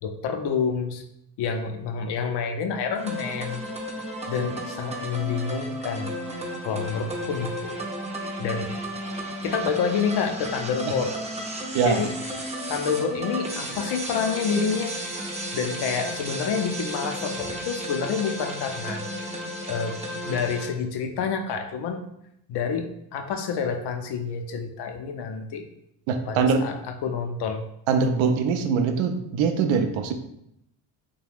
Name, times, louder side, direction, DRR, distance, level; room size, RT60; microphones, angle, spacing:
voice 1, 0.0-1.0 1.4-3.6 4.3-6.1 6.6-7.8 8.4-8.7 9.4-11.2 11.8-12.1 12.7-14.9 15.5-19.0 19.7-22.1 22.5-25.7 26.3-27.6, left 6 dB, 55° left, 5 dB, 0.5 m, -28 dB
sound 1, 2.9-20.7, right 1 dB, 15° right, 0.5 m, -33 dB
voice 2, 26.1-26.6 27.9-30.1, right 5 dB, 75° right, 7 dB, 0.5 m, -22 dB
2.3 x 2.2 x 3.3 m, 0.78 s
supercardioid pair, 65°, 48 cm